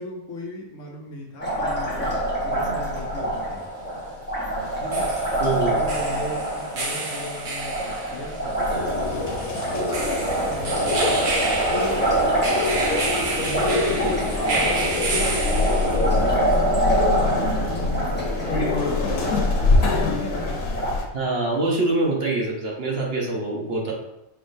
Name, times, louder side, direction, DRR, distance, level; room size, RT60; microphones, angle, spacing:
voice 1, 0.0-3.7 4.8-5.3 5.7-10.0 10.3-11.3 11.7-12.1 13.3-15.4 15.8-21.0, left 1 dB, 65° left, 0 dB, 1.1 m, -37 dB
Liquid, 1.4-20.9, right 1 dB, 10° left, 0.8 m, -26 dB
sound 1, 2.0-2.1 4.6-16.2, right 3 dB, 85° right, 1.5 m, -31 dB
voice 2, 5.4-5.8 21.1-23.9, right 2 dB, 50° right, -2 dB, 1.0 m, -24 dB
sound 2, 8.7-21.0, left 3 dB, 90° left, 1.3 m, -26 dB
5.5 x 3.5 x 2.6 m, 0.87 s
omnidirectional pair, 1.5 m